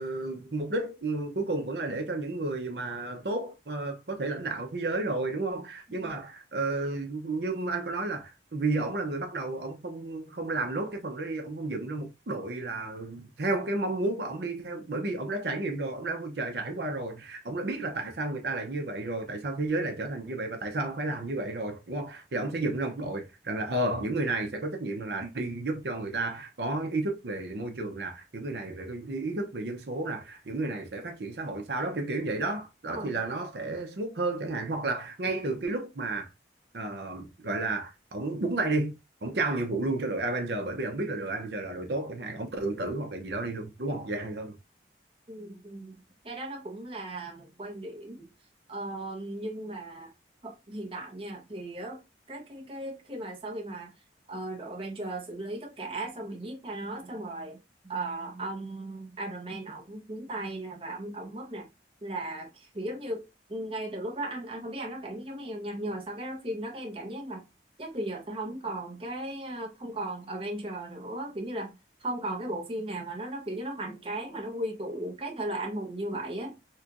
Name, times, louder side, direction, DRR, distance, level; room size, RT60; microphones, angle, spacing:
voice 1, 0.0-36.3 36.7-38.9 39.2-44.6, right 2 dB, 65° right, 0.7 m, -32 dB
voice 2, 45.3-48.3 48.7-50.1 50.4-52.0 52.3-53.9 54.3-61.7 62.0-67.4 67.8-76.6, right 1 dB, 30° right, 0.7 m, -36 dB
4.3 x 2.3 x 2.5 m
head